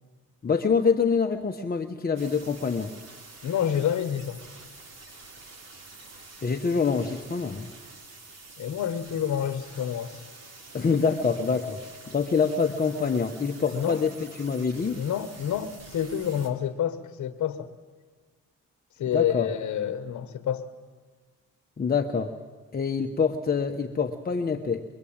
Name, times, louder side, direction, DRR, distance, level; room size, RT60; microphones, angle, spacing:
voice 1, 0.4-2.9 6.4-7.7 10.7-11.8 12.1-15.0 19.1-19.5 21.8-22.3 22.7-24.8, left 5 dB, 30° left, 3 dB, 1.3 m, -26 dB
sound 1, 2.2-16.5, right 3 dB, 55° right, 4.3 m, -47 dB
voice 2, 3.4-4.4 8.6-10.2 13.7-14.0 15.0-17.7 19.0-20.7, left 9 dB, 65° left, 9 dB, 1.3 m, -28 dB
24.0 x 23.0 x 8.9 m, 1.4 s
cardioid pair, 90°, 30 cm